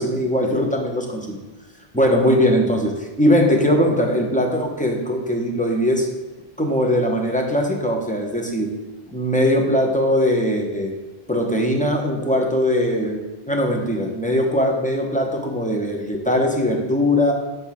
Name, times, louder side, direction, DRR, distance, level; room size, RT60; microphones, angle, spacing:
voice 1, 0.0-1.4 1.9-6.1 6.6-8.7 9.1-10.9 11.3-17.3, equal, 10° left, 1 dB, 0.6 m, -20 dB
6.0 x 3.5 x 5.8 m, 1.1 s
omnidirectional pair, 1.1 m